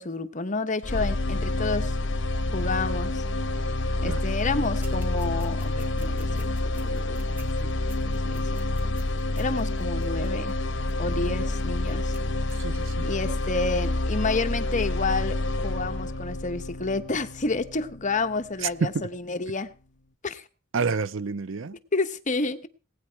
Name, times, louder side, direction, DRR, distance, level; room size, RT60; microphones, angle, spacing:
voice 1, 0.0-2.0 2.5-3.2 4.0-7.3 7.6-7.7 8.2-8.4 8.8-9.0 9.4-10.5 11.0-12.2 13.0-15.4 15.6-19.7 20.2-20.4 21.9-22.7, left 3 dB, 40° left, 1.2 m, -30 dB
sound 1, 0.8-18.8, left 2 dB, 60° left, 1.2 m, -28 dB
sound 2, 4.8-11.3 11.6-12.2 12.5-12.6, equal, 10° right, 3.3 m, -49 dB
voice 2, 12.6-13.1 18.6-18.9 20.7-21.8, right 5 dB, 65° right, 0.6 m, -29 dB
18.5 x 9.7 x 4.7 m
head